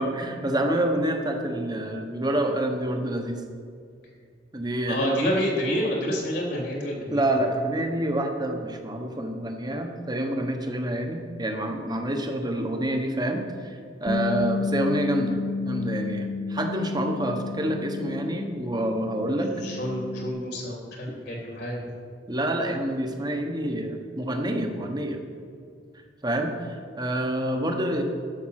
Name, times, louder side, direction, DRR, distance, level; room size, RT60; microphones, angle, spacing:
voice 1, 0.0-3.4 4.5-5.2 7.1-19.5 22.3-25.2 26.2-28.0, right 1 dB, 25° right, 4 dB, 1.2 m, -27 dB
voice 2, 4.9-7.2 19.5-21.8, equal, 65° left, -1 dB, 3.1 m, -28 dB
Bass guitar, 14.1-20.3, left 3 dB, 45° left, 1.1 m, -31 dB
11.5 x 7.0 x 6.5 m, 2.3 s
head